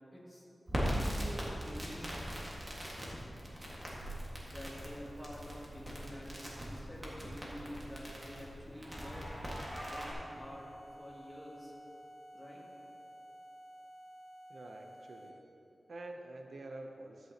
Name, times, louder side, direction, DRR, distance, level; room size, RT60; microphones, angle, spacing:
voice 1, 0.1-0.5 0.8-2.2 4.4-9.5 9.8-10.7 11.0-11.7 12.3-12.6, equal, ahead, -7 dB, 2.1 m, -48 dB
Crackle, 0.7-10.1, equal, 20° right, 1.6 m, -40 dB
sound 1, 9.6-15.5, equal, 50° left, 1.8 m, -53 dB
voice 2, 14.5-15.4 15.9-17.3, right 2 dB, 70° right, 3 dB, 0.6 m, -47 dB
12.5 x 8.1 x 2.9 m, 2.8 s
wide cardioid pair, 120°, 0 cm